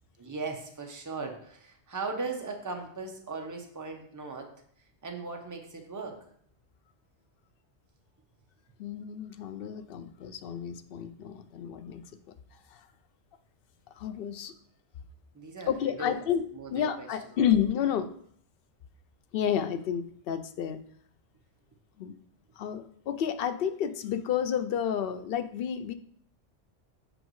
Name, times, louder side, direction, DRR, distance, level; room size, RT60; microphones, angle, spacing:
voice 1, 0.2-4.5 5.0-6.2 15.3-16.2 16.5-17.1, right 3 dB, 20° right, 3 dB, 0.8 m, -38 dB
voice 2, 8.8-12.0 12.7-12.8 14.0-14.5 15.7-16.4 16.7-18.2 19.3-20.8 22.0-22.1 22.6-25.9, left 9 dB, 65° left, 10 dB, 0.7 m, -30 dB
7.9 x 5.1 x 3.1 m, 0.63 s
omnidirectional pair, 1.1 m